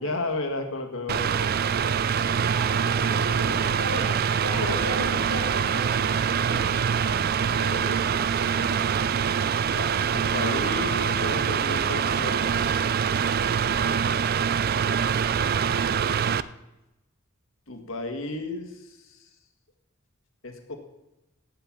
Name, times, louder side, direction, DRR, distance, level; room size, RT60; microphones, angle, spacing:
voice 1, 0.0-1.6 3.1-3.8 4.6-5.2 6.5-6.9 7.5-8.7 9.7-12.7 15.2-16.1 17.7-19.2 20.4-20.8, left 2 dB, 65° left, 5 dB, 1.8 m, -34 dB
Mechanical fan, 1.1-16.4, right 7 dB, 45° right, 0.3 m, -24 dB
voice 2, 2.3-7.1 8.5-8.9 13.7-14.0, right 1 dB, 65° right, 3 dB, 2.4 m, -38 dB
16.5 x 5.7 x 7.4 m, 0.96 s
head